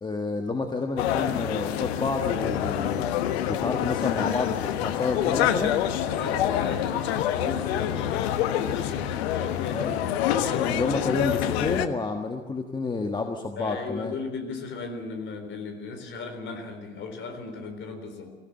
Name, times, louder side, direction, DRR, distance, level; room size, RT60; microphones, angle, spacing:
voice 1, 0.0-3.1 3.4-5.8 9.7-10.0 10.5-14.1, left 3 dB, 10° left, 4 dB, 1.4 m, -29 dB
sound 1, 1.0-11.9, left 11 dB, 55° left, 1.4 m, -26 dB
voice 2, 6.0-9.9 10.4-11.2 13.6-18.4, left 4 dB, 30° left, 6 dB, 4.1 m, -36 dB
23.5 x 16.5 x 7.7 m, 1.3 s
figure-of-eight pair, 90°, 37 cm